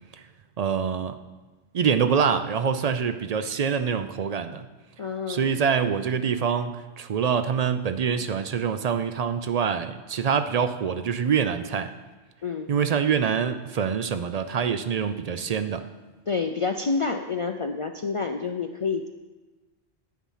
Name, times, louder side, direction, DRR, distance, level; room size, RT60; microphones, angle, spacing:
voice 1, 0.6-1.2 1.7-4.7 5.3-11.9 12.7-15.8, right 7 dB, 55° right, 10 dB, 0.4 m, -25 dB
voice 2, 5.0-5.6 12.4-12.7 16.3-19.1, left 4 dB, 60° left, 6 dB, 0.3 m, -28 dB
9.4 x 7.1 x 5.6 m, 1.2 s
omnidirectional pair, 1.1 m